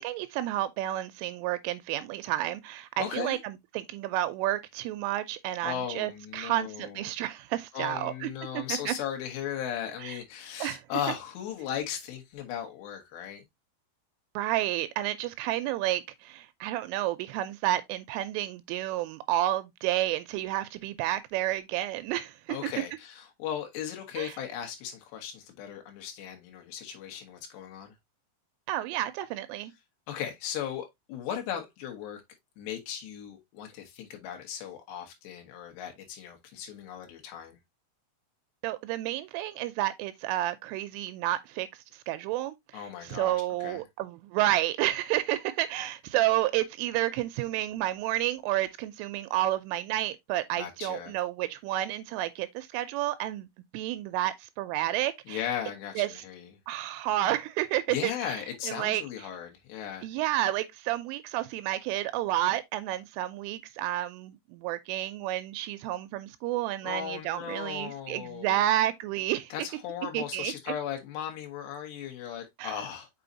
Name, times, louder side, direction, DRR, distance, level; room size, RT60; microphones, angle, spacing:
voice 1, 0.0-8.3 8.7-8.9 10.0-10.2 10.6-10.8 14.4-22.6 24.2-24.3 28.7-29.7 38.6-41.7 42.1-53.5 53.7-55.4 56.0-56.2 56.7-58.4 58.7-59.0 60.0-69.5 70.1-70.7 72.6-72.7, right 14 dB, 85° right, 3.0 m, -30 dB
voice 2, 3.0-3.4 5.6-7.1 7.7-13.5 22.5-27.9 30.1-32.2 32.6-37.6 42.7-43.8 50.6-51.2 55.3-56.5 57.9-60.1 66.8-68.7 69.5-73.1, left 9 dB, 65° left, 3.4 m, -37 dB
6.9 x 5.5 x 2.7 m
omnidirectional pair, 5.8 m